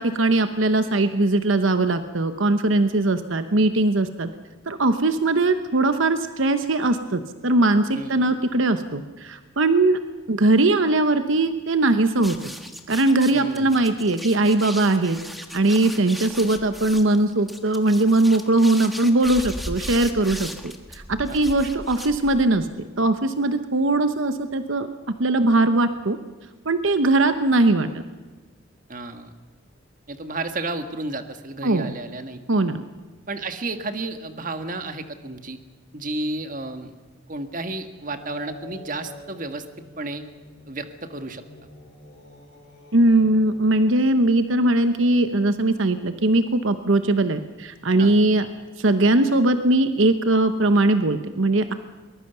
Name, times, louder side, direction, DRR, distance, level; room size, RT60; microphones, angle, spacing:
voice 1, 0.0-4.3 4.7-10.0 10.3-12.4 12.9-15.2 15.5-22.7 23.0-24.9 25.2-26.2 26.6-27.9 31.6-31.9 32.5-32.8 42.9-48.5 48.8-51.7, right 2 dB, 70° right, 9 dB, 1.0 m, -20 dB
sound 1, 12.2-22.6, equal, ahead, 1.4 m, -37 dB
voice 2, 13.3-13.8 21.3-21.4 28.9-29.3 30.1-32.4 33.3-35.6 35.9-37.0 37.3-39.7 40.0-40.2 40.7-41.4 48.0-48.1, right 2 dB, 40° right, 8 dB, 1.6 m, -32 dB
sound 2, 38.1-43.6, left 1 dB, 55° left, 7.4 m, -46 dB
23.0 x 20.5 x 6.9 m, 1.3 s
head